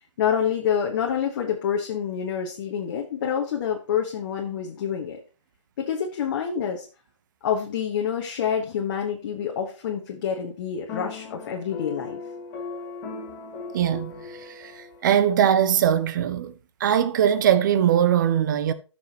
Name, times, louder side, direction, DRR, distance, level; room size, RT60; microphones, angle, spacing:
voice 1, 0.2-5.2 5.8-6.8 7.4-12.2, left 8 dB, 40° left, 1.3 m, -27 dB
sound 1, 10.9-15.3, left 4 dB, 25° left, 2.0 m, -37 dB
voice 2, 13.7-14.1 14.6-14.7 15.0-16.5 16.8-18.7, right 9 dB, 40° right, 0.8 m, -20 dB
14.0 x 6.2 x 2.9 m
hypercardioid pair, 145°, 16 cm